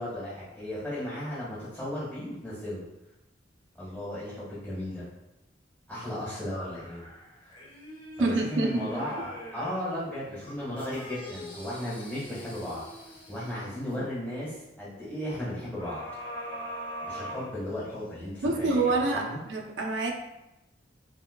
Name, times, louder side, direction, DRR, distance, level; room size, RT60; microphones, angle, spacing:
voice 1, 0.0-2.8 3.7-5.1 5.9-7.1 8.2-12.8 13.3-16.0 17.1-19.4, left 1 dB, 5° left, -11 dB, 1.2 m, -35 dB
sound 1, 6.7-9.9 10.4-14.0 15.8-18.1 18.6-18.7, equal, 25° left, 0.8 m, -43 dB
voice 2, 8.2-9.1 9.6-9.7 18.4-20.1, right 2 dB, 80° right, 1 dB, 0.5 m, -27 dB
4.7 x 2.3 x 2.2 m, 0.95 s
head